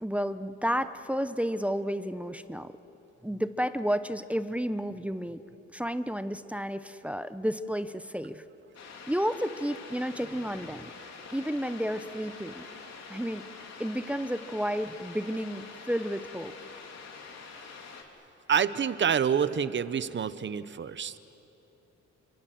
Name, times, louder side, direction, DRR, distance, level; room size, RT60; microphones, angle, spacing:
voice 1, 0.0-2.7 3.2-5.4 5.7-8.4 9.1-10.9 11.3-12.6 13.1-13.5 13.8-16.5, equal, 5° right, 11 dB, 0.9 m, -31 dB
sound 1, 8.7-18.0, left 5 dB, 60° left, 3.6 m, -46 dB
voice 2, 18.5-21.2, right 7 dB, 40° right, 13 dB, 1.0 m, -27 dB
28.0 x 26.0 x 7.8 m, 3.0 s
cardioid pair, 90°, 30 cm